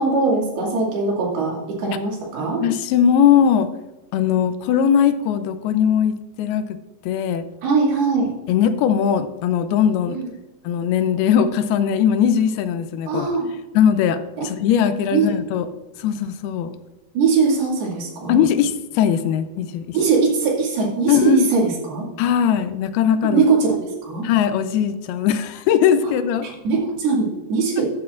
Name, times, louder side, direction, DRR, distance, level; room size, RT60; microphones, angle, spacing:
voice 1, 0.0-2.6 7.6-8.3 10.1-10.3 13.1-13.5 14.4-14.5 15.1-15.2 17.1-18.4 19.9-22.1 23.3-24.3 26.4-27.9, right 4 dB, 75° right, -3 dB, 4.2 m, -21 dB
voice 2, 2.6-3.7 4.1-6.8 7.0-7.5 8.5-10.2 10.6-13.3 13.8-15.7 16.0-16.7 18.3-20.0 21.1-21.5 22.2-23.4 24.2-26.5, left 8 dB, 80° left, 11 dB, 2.5 m, -19 dB
13.0 x 8.3 x 2.5 m, 1.1 s
omnidirectional pair, 4.5 m